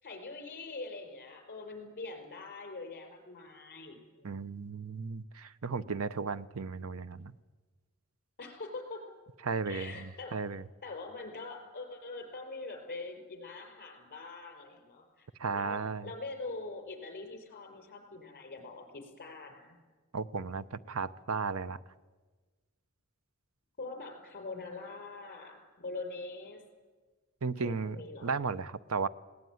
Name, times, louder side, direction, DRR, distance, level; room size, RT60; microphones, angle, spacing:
voice 1, 0.0-4.3 8.4-9.0 9.7-10.3 10.8-19.8 23.8-26.6 27.6-28.3, left 3 dB, 45° left, 4 dB, 5.2 m, -43 dB
voice 2, 4.2-7.3 9.4-10.6 15.4-16.1 20.1-21.8 27.4-29.1, right 4 dB, 70° right, 16 dB, 0.7 m, -35 dB
20.5 x 18.0 x 9.4 m, 1.3 s
head